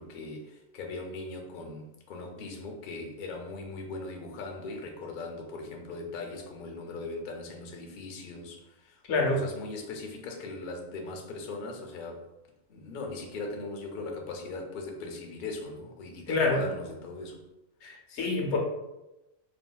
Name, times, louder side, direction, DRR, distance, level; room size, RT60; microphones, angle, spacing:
voice 1, 0.0-12.3 12.7-17.4, left 3 dB, 60° left, 1 dB, 0.6 m, -39 dB
voice 2, 9.1-9.4 16.3-16.7 17.8-18.6, left 3 dB, 80° left, 0 dB, 0.9 m, -27 dB
3.5 x 2.1 x 2.2 m, 0.97 s
omnidirectional pair, 1.2 m